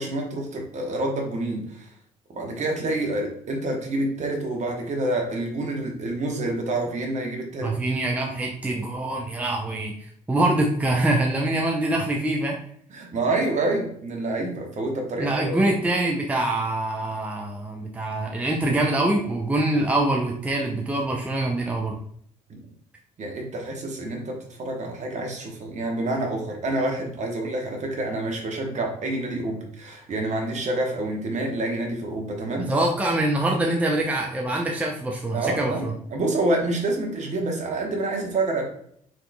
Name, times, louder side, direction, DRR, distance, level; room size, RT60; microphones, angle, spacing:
voice 1, 0.0-1.9 2.3-7.7 12.9-15.6 22.5-22.6 23.2-32.7 35.3-38.6, right 2 dB, 40° right, 1 dB, 1.1 m, -27 dB
voice 2, 7.6-12.6 15.2-22.0 32.7-35.9, right 1 dB, 5° right, 0 dB, 0.6 m, -24 dB
5.1 x 3.0 x 2.3 m, 0.65 s
figure-of-eight pair, 50°, 19 cm